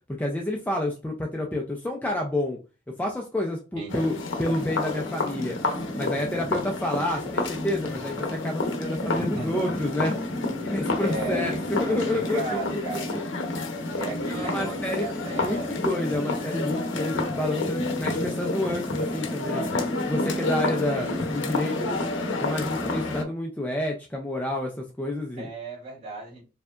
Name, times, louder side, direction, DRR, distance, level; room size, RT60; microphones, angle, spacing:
voice 1, 0.2-2.6 3.0-5.6 5.9-10.3 10.6-13.0 14.3-19.6 20.1-22.0 22.4-25.5, left 1 dB, 10° left, 0.4 m, -29 dB
voice 2, 3.7-4.2 9.2-9.5 11.0-11.6 11.9-13.2 14.0-15.7 25.4-26.4, right 4 dB, 35° right, 1.9 m, -35 dB
sound 1, 3.9-23.2, left 2 dB, 65° left, 0.7 m, -29 dB
4.5 x 2.7 x 2.4 m
head